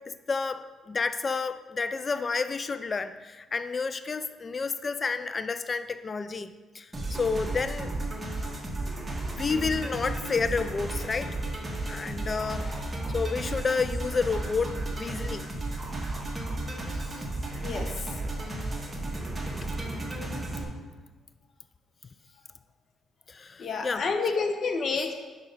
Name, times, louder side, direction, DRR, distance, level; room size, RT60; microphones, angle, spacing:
voice 1, 0.3-7.9 9.3-11.4 11.9-15.5 16.9-17.0 23.3-24.1, left 4 dB, 35° left, 12 dB, 0.3 m, -30 dB
sound 1, 6.9-20.6, right 2 dB, 20° right, 1.3 m, -33 dB
voice 2, 23.6-25.1, left 4 dB, 55° left, 5 dB, 0.8 m, -29 dB
5.3 x 4.5 x 5.5 m, 1.3 s
cardioid pair, 90°, 0 cm